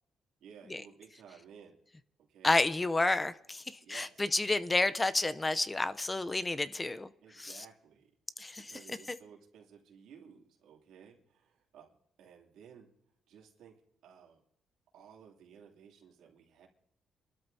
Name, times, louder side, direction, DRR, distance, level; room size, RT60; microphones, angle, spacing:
voice 1, 0.4-1.8 2.3-2.5 3.8-4.2 7.2-8.1 8.6-11.9 12.2-12.9 13.3-14.4 14.9-16.7, right 7 dB, 85° right, 2.8 m, -56 dB
voice 2, 2.4-7.6 8.4-9.2, left 2 dB, 20° left, 0.6 m, -31 dB
26.5 x 12.5 x 2.8 m
cardioid pair, 90°, 0 cm